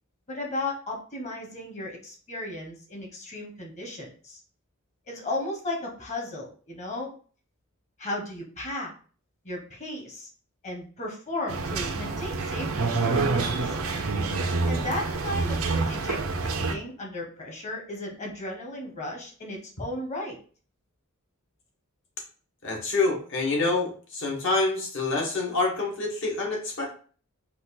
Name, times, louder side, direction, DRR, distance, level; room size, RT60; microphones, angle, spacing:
voice 1, 0.3-4.4 5.1-7.1 8.0-8.9 9.4-10.3 10.6-13.9 14.6-20.4, left 1 dB, 35° left, 0 dB, 1.2 m, -35 dB
sound 1, 11.5-16.7, right 3 dB, 75° right, 0.7 m, -27 dB
voice 2, 22.6-26.9, left 3 dB, 60° left, -1 dB, 1.4 m, -27 dB
4.8 x 2.5 x 4.1 m, 0.42 s
head